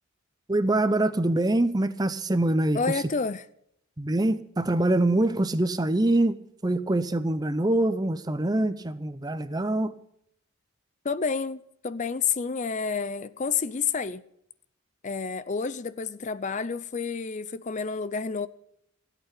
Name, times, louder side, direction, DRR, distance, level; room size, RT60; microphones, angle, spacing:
voice 1, 0.5-2.8 4.0-10.0, right 1 dB, 20° right, 0.6 m, -24 dB
voice 2, 2.7-3.4 11.0-14.2 15.0-18.5, left 5 dB, 35° left, 0.5 m, -29 dB
16.0 x 8.2 x 8.3 m
head